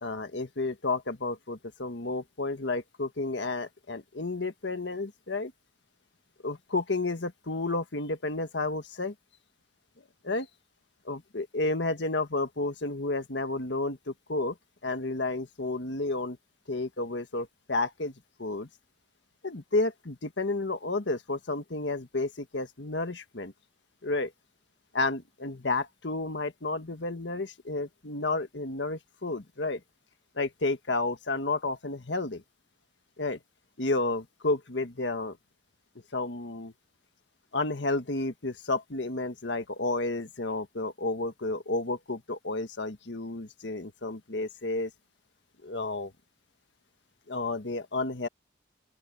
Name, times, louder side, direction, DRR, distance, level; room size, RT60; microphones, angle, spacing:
voice 1, 0.0-5.5 6.4-9.1 10.2-10.5 11.0-14.5 14.8-16.4 16.7-18.1 18.4-18.7 19.4-23.5 24.0-24.3 24.9-29.8 30.4-32.4 33.2-33.4 33.8-35.4 36.1-36.7 37.5-44.9 45.6-46.1 47.3-48.3, left 2 dB, 75° left, 1.5 m, -31 dB
open air
head